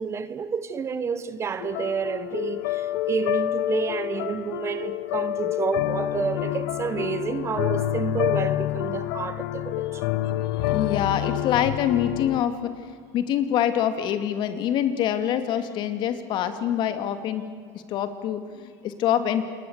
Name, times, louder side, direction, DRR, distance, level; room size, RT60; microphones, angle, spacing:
voice 1, 0.0-10.0, right 6 dB, 30° right, 1.1 m, -29 dB
sound 1, 1.6-12.4, left 14 dB, 80° left, 1.2 m, -28 dB
voice 2, 10.6-17.4 17.9-19.4, left 10 dB, 50° left, 2.5 m, -25 dB
28.0 x 21.5 x 8.3 m
supercardioid pair, 115°, 10 cm